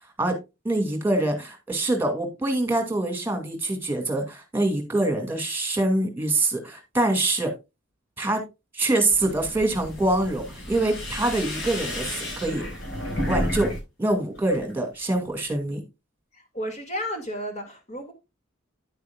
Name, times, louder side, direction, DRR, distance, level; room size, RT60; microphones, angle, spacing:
voice 1, 0.6-7.5 8.2-8.4 8.7-12.6 13.3-13.7 14.0-15.8, right 2 dB, 10° right, 2.2 m, -25 dB
sound 1, 9.1-13.8 14.1-14.7, left 1 dB, 60° left, 5.4 m, -32 dB
voice 2, 16.3-18.1, equal, 35° left, 2.3 m, -33 dB
10.0 x 8.3 x 2.4 m
head